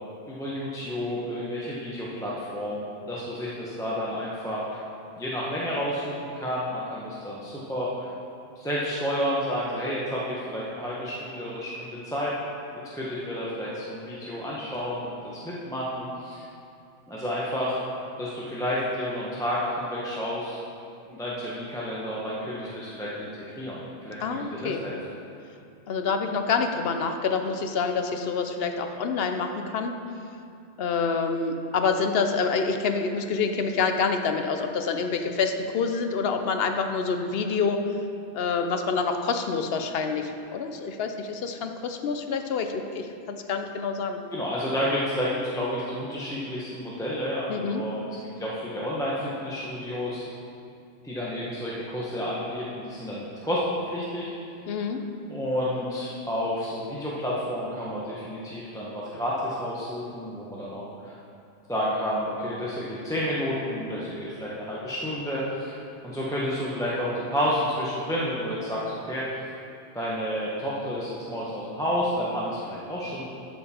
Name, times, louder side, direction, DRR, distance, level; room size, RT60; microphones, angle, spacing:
voice 1, 0.3-4.8 5.2-8.1 8.6-12.3 12.7-16.4 17.1-17.8 18.2-20.6 21.1-25.0 44.3-50.2 51.0-54.3 55.3-61.1 61.7-69.3 69.9-73.3, equal, 5° left, -7 dB, 0.9 m, -30 dB
voice 2, 24.2-24.8 25.9-29.9 30.8-37.8 38.3-44.2 47.5-47.8 54.7-55.0, left 5 dB, 65° left, 6 dB, 0.8 m, -27 dB
12.5 x 4.6 x 4.3 m, 2.5 s
omnidirectional pair, 1.1 m